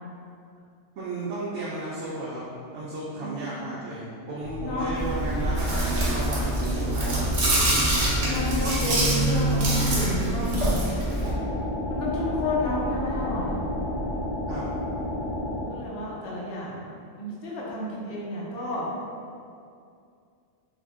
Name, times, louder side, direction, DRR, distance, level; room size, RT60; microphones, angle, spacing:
voice 1, 1.0-2.4 2.7-8.0 14.5-14.7, right 2 dB, 75° right, -7 dB, 0.9 m, -34 dB
voice 2, 3.2-3.7 4.6-4.9 8.2-10.9 11.9-13.6 15.7-16.9 17.2-18.9, left 2 dB, 60° left, -6 dB, 0.8 m, -31 dB
sound 1, 4.4-14.2, equal, 25° right, 0.8 m, -38 dB
Chewing mastication, 5.0-11.3, right 1 dB, 50° right, 0.5 m, -24 dB
sound 2, 11.2-15.7, left 1 dB, 40° left, 1.6 m, -31 dB
3.5 x 2.0 x 3.5 m, 2.4 s
omnidirectional pair, 1.2 m